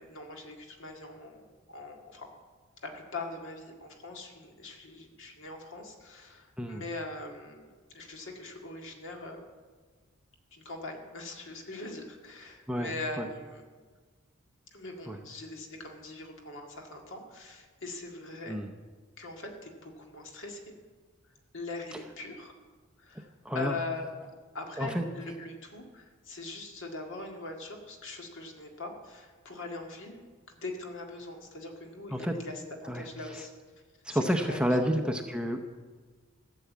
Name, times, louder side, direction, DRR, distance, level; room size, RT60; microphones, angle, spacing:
voice 1, 0.0-2.3 2.8-9.5 10.5-13.6 14.7-18.6 19.2-20.8 21.2-22.5 23.0-30.2 30.5-33.5 34.1-35.0, left 2 dB, 65° left, 2 dB, 1.9 m, -42 dB
voice 2, 23.4-23.8 24.8-25.0 32.1-32.4 32.9-33.1 33.3-33.4 34.0-35.7, equal, 5° right, 4 dB, 0.7 m, -29 dB
13.5 x 7.1 x 8.3 m, 1.5 s
head